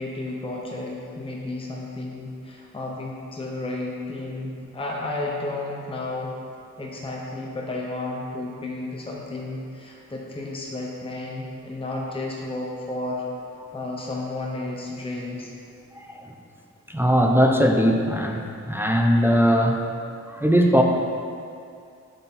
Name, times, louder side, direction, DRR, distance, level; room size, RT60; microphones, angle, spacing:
voice 1, 0.0-6.3 6.8-13.2 13.7-15.5, left 2 dB, 20° left, -3 dB, 0.8 m, -32 dB
voice 2, 16.9-19.8 20.3-20.8, equal, 5° right, 1 dB, 0.5 m, -20 dB
8.7 x 5.7 x 4.1 m, 2.4 s
wide cardioid pair, 120°, 31 cm